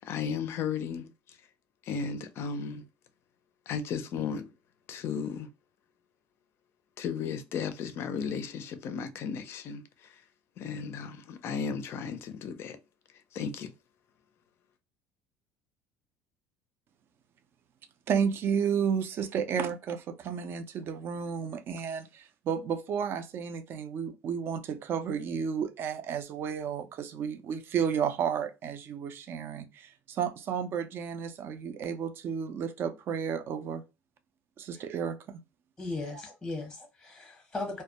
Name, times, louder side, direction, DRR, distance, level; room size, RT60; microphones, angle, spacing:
voice 1, 0.0-1.4 1.8-2.8 3.7-4.5 4.9-5.5 7.0-10.2 10.6-12.8 13.3-13.7, left 6 dB, 50° left, 0.4 m, -35 dB
voice 2, 18.1-33.8 34.6-35.4, right 7 dB, 45° right, 0.4 m, -32 dB
voice 3, 35.8-37.8, left 2 dB, 10° left, 0.8 m, -37 dB
2.2 x 2.0 x 2.7 m
cardioid pair, 130°, 5 cm